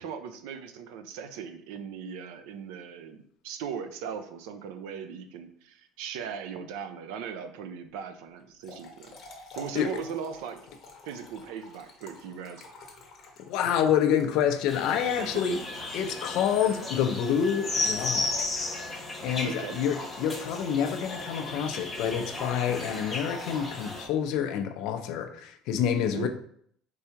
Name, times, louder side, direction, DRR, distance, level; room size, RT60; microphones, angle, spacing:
voice 1, 0.0-9.2 9.5-10.6 11.0-12.6 15.2-15.4 19.4-19.8 26.1-26.3, right 7 dB, 90° right, 0.5 m, -38 dB
Trickle dribble / Fill (with liquid), 8.4-15.9, left 3 dB, 35° left, 0.9 m, -50 dB
voice 2, 13.5-15.6 15.9-18.5 19.2-26.3, left 8 dB, 55° left, 0.5 m, -27 dB
sound 1, 14.7-24.1, left 2 dB, 10° left, 0.9 m, -34 dB
4.6 x 3.4 x 2.9 m
cardioid pair, 175°, 0 cm